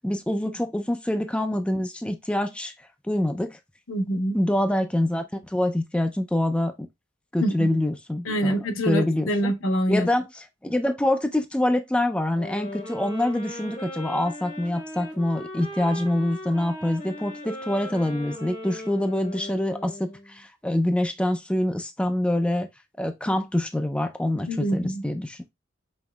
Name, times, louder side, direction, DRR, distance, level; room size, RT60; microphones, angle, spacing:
voice 1, 0.0-2.7 3.0-3.6 4.3-6.9 7.3-8.6 8.8-9.3 9.9-10.2 10.6-22.7 23.0-25.5, left 1 dB, 5° left, 0.4 m, -25 dB
voice 2, 3.9-4.4 7.4-7.7 8.2-10.1 24.5-25.0, equal, 85° left, 0.9 m, -25 dB
sound 1, 12.4-20.3, left 1 dB, 45° left, 2.6 m, -38 dB
5.4 x 3.0 x 2.2 m
head